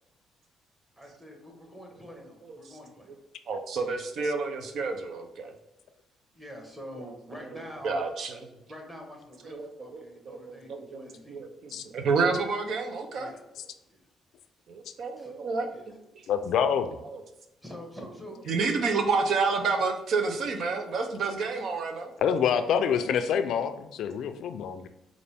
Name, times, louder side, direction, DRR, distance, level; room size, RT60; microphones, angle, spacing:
voice 1, 1.0-3.1 6.3-7.9 8.7-11.4 13.1-13.4 13.9-14.0 15.2-15.3 15.7-15.9 17.6-18.4 18.6-18.9 19.2-19.3 22.5-22.8, equal, 10° right, 0 dB, 1.3 m, -46 dB
voice 2, 2.4-2.7 3.5-5.5 7.4-8.6 9.4-13.3 14.7-16.2 17.0-17.2 18.5-22.1, right 4 dB, 65° right, 4 dB, 0.6 m, -30 dB
voice 3, 16.3-17.0 22.2-24.9, left 7 dB, 75° left, 10 dB, 0.3 m, -26 dB
5.1 x 2.5 x 3.4 m, 0.89 s
cardioid pair, 90°, 0 cm